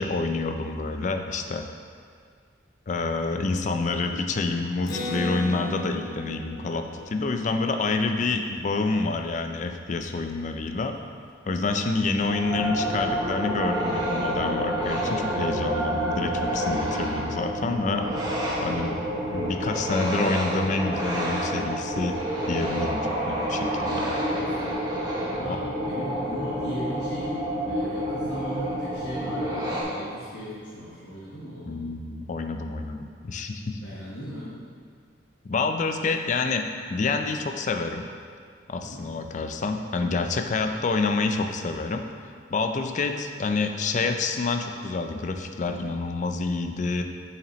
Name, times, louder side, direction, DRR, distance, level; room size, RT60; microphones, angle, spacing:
voice 1, 0.0-1.7 2.9-11.0 11.5-18.1 18.6-19.0 19.3-22.2 22.5-24.0 25.5-25.6 31.6-33.8 35.4-38.1 38.7-42.1 42.5-47.0, left 3 dB, 40° left, 6 dB, 0.4 m, -28 dB
Acoustic guitar, 4.9-8.5, equal, 55° left, 1.0 m, -35 dB
sound 1, 12.0-20.0, right 4 dB, 85° right, 0.4 m, -43 dB
sound 2, 12.2-29.8, equal, 20° right, 0.9 m, -28 dB
voice 2, 23.7-24.8 25.2-27.4 27.7-31.8 33.8-34.5 38.7-39.0, equal, 90° left, -10 dB, 1.4 m, -37 dB
6.9 x 5.8 x 3.1 m, 2.1 s
head